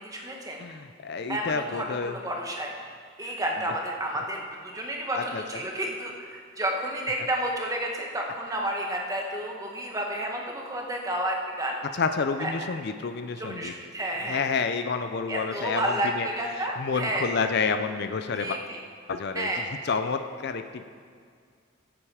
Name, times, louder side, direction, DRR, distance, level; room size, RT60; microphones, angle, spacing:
voice 1, 0.0-0.6 1.3-2.7 3.2-11.8 12.4-12.5 13.4-14.5 15.3-17.3 18.4-18.8 19.3-19.7, right 1 dB, 15° right, 0 dB, 1.4 m, -31 dB
voice 2, 0.6-2.2 5.1-5.4 11.9-13.7 14.3-16.3 16.5-18.6 19.1-19.5 19.8-20.8, left 5 dB, 50° left, 8 dB, 0.5 m, -29 dB
15.5 x 8.7 x 4.9 m, 2.1 s
head